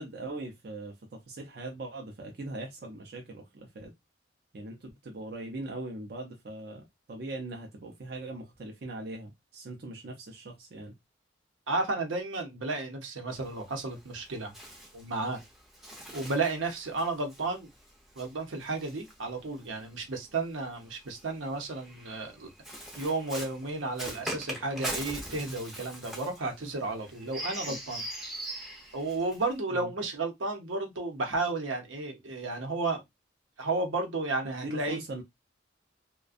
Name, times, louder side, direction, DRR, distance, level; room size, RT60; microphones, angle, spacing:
voice 1, 0.0-3.9 4.5-10.9 27.7-27.8 29.7-29.9 34.4-35.2, right 2 dB, 55° right, 0.5 m, -40 dB
voice 2, 11.7-14.5 14.9-15.4 16.1-17.7 18.2-22.5 23.0-28.0 28.9-33.0 33.6-35.0, right 3 dB, 85° right, 0.7 m, -33 dB
Bird, 13.3-19.8 20.8-29.6, right 1 dB, ahead, 0.5 m, -42 dB
2.4 x 2.2 x 2.4 m
head